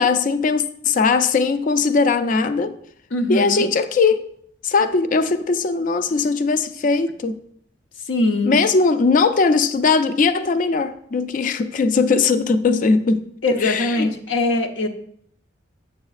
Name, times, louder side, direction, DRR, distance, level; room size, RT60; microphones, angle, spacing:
voice 1, 0.0-2.8 3.3-4.3 4.6-7.4 8.5-13.3 13.6-14.1, left 4 dB, 45° left, 0.3 m, -19 dB
voice 2, 3.1-3.7 8.1-8.6 13.4-14.9, left 2 dB, 90° left, 0.7 m, -21 dB
7.0 x 6.5 x 2.4 m
head